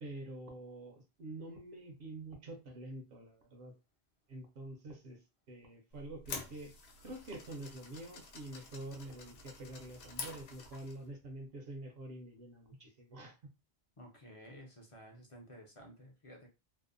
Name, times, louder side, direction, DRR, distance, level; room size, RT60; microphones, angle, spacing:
voice 1, 0.0-3.7 4.3-5.2 5.5-6.7 7.0-13.4, right 1 dB, 65° right, 3 dB, 0.8 m, -47 dB
sound 1, 5.9-11.1, left 4 dB, 80° left, 0.9 m, -48 dB
voice 2, 14.0-16.5, equal, 40° left, 1 dB, 0.5 m, -53 dB
2.7 x 2.0 x 2.4 m, 0.29 s
omnidirectional pair, 1.1 m